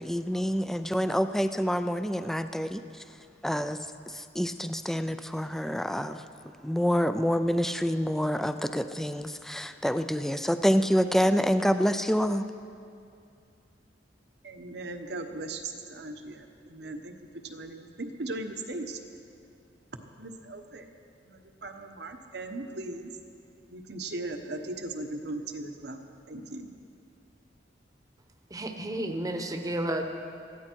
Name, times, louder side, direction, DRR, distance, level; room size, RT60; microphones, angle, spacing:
voice 1, 0.0-3.0 3.4-6.2 6.6-12.5, equal, ahead, 10 dB, 0.4 m, -27 dB
voice 2, 14.4-19.0 20.2-20.9 21.2-23.1 23.7-26.0 26.3-26.7, right 2 dB, 65° right, 6 dB, 1.1 m, -38 dB
voice 3, 28.5-30.1, right 1 dB, 20° right, 5 dB, 1.0 m, -31 dB
20.5 x 14.5 x 4.6 m, 2.5 s
head